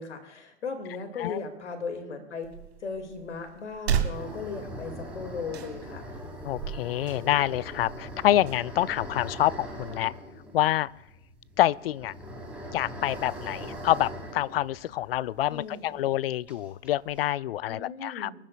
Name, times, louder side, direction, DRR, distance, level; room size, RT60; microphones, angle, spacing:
voice 1, 0.0-2.5 2.8-6.0 15.5-16.0 17.7-18.3, left 4 dB, 75° left, 5 dB, 2.4 m, -37 dB
sound 1, 2.4-9.9, right 8 dB, 60° right, 2.0 m, -36 dB
sound 2, 4.1-15.6 15.8-15.9 16.5-17.2, equal, 5° right, 5.2 m, -41 dB
voice 2, 6.4-10.1 10.5-10.9 11.6-12.1 12.7-18.3, left 13 dB, 55° left, 21 dB, 0.5 m, -27 dB
25.5 x 11.5 x 2.4 m, 0.93 s
figure-of-eight pair, 110°, 36 cm